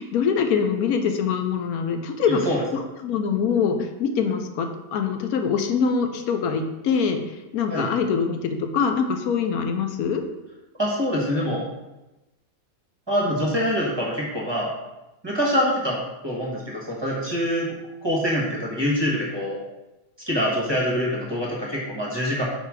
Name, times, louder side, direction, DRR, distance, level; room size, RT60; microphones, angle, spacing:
voice 1, 0.0-7.2 7.5-10.2, left 6 dB, 85° left, 5 dB, 1.2 m, -24 dB
voice 2, 2.3-2.6 7.7-7.9 10.8-11.6 13.1-14.7 15.2-16.0 16.2-17.7 18.0-19.6 20.3-22.5, equal, 20° right, -4 dB, 1.2 m, -25 dB
4.9 x 4.4 x 4.8 m, 1.0 s
omnidirectional pair, 1.5 m